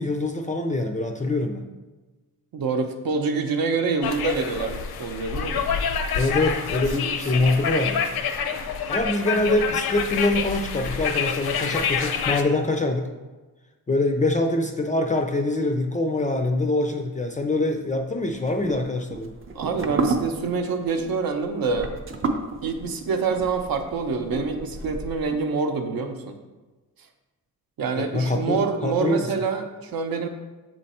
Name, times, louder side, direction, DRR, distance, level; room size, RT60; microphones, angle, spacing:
voice 1, 0.0-1.7 6.1-8.1 8.9-13.1 13.9-19.3 28.0-29.3, left 2 dB, 20° left, 4 dB, 0.3 m, -24 dB
voice 2, 2.5-5.6 19.5-22.0 22.6-26.4 27.8-30.3, right 4 dB, 70° right, 6 dB, 0.7 m, -26 dB
sound 1, 4.0-12.4, left 6 dB, 85° left, 0.6 m, -27 dB
sound 2, 18.3-25.4, right 4 dB, 35° right, 0.5 m, -31 dB
7.2 x 3.1 x 4.2 m, 1.2 s
wide cardioid pair, 155°, 37 cm